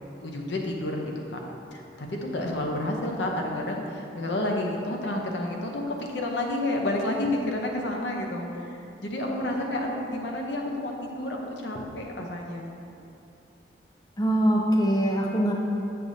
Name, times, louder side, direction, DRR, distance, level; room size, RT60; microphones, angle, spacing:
voice 1, 0.2-1.4 1.7-12.7, left 1 dB, 80° left, 1 dB, 0.8 m, -30 dB
voice 2, 14.2-15.5, right 1 dB, 20° left, -1 dB, 0.4 m, -23 dB
6.7 x 6.1 x 2.7 m, 2.7 s
head